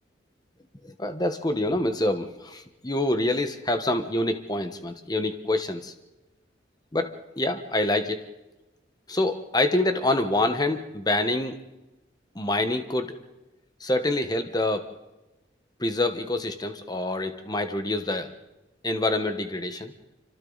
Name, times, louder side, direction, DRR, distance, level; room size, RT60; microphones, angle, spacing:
voice 1, 0.8-5.9 6.9-8.2 9.1-11.6 12.3-13.1 13.8-14.9 15.8-18.3 18.8-19.9, left 2 dB, 20° left, 8 dB, 1.2 m, -26 dB
27.0 x 25.5 x 4.0 m, 1.0 s
head